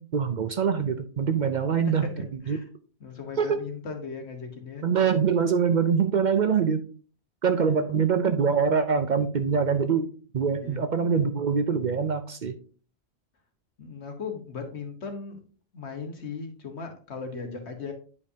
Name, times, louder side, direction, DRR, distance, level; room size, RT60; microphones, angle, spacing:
voice 1, 0.0-2.1 2.5-2.6 3.4-3.6 4.8-6.8 7.4-10.1 10.3-12.6, right 6 dB, 50° right, 8 dB, 0.6 m, -24 dB
voice 2, 1.8-2.7 3.0-4.9 7.6-7.7 10.6-10.8 13.8-15.4 15.7-17.9, left 5 dB, 75° left, 4 dB, 1.6 m, -37 dB
9.6 x 5.2 x 2.7 m, 0.40 s
omnidirectional pair, 1.1 m